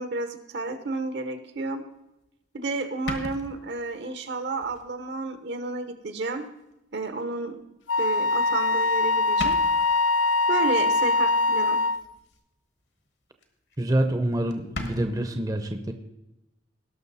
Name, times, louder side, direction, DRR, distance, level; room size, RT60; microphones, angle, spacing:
voice 1, 0.0-1.8 2.5-6.4 6.9-7.6 8.0-9.6 10.5-11.8, right 3 dB, 65° right, 9 dB, 1.0 m, -31 dB
sound 1, 2.2-2.3 3.1-4.0 4.6-4.9 5.4-5.5 6.7-6.8 8.5-8.8 9.1-9.2 9.4-10.0 12.0-12.4 12.8-13.1 13.4-13.5 13.7-13.8 14.1-14.2 14.5-15.1, left 2 dB, 65° left, 1.4 m, -37 dB
Wind instrument woodwind instrument, 7.9-12.1, left 3 dB, 90° left, 0.4 m, -23 dB
voice 2, 13.8-15.9, right 1 dB, 20° right, 6 dB, 0.7 m, -26 dB
18.0 x 6.3 x 4.1 m, 0.91 s
head